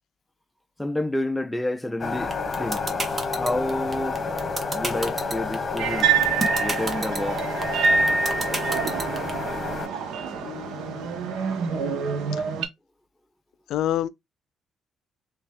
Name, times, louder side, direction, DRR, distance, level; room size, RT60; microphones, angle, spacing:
voice 1, 0.8-2.9 3.3-4.2 4.7-6.1 6.6-7.4, left 1 dB, 10° left, 0.4 m, -29 dB
sound 1, 2.0-9.9, left 4 dB, 35° left, 1.1 m, -30 dB
sound 2, 2.3-9.3, right 2 dB, 30° right, 1.1 m, -29 dB
sound 3, 5.8-12.7, right 5 dB, 85° right, 0.8 m, -26 dB
voice 2, 10.4-11.1 13.7-14.1, left 12 dB, 80° left, 0.3 m, -28 dB
3.4 x 3.1 x 3.4 m
cardioid pair, 90°, 0 cm